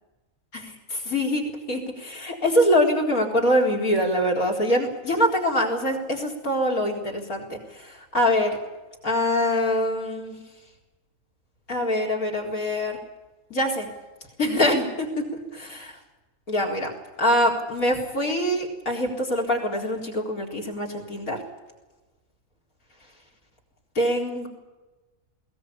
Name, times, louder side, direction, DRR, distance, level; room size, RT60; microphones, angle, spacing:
voice 1, 0.5-8.5 9.0-10.4 11.7-13.0 13.5-13.9 14.4-15.3 15.5-15.9 16.5-16.9 17.2-21.4 23.9-24.5, equal, 85° left, 5 dB, 4.7 m, -24 dB
21.0 x 19.0 x 8.6 m, 1.2 s
omnidirectional pair, 1.4 m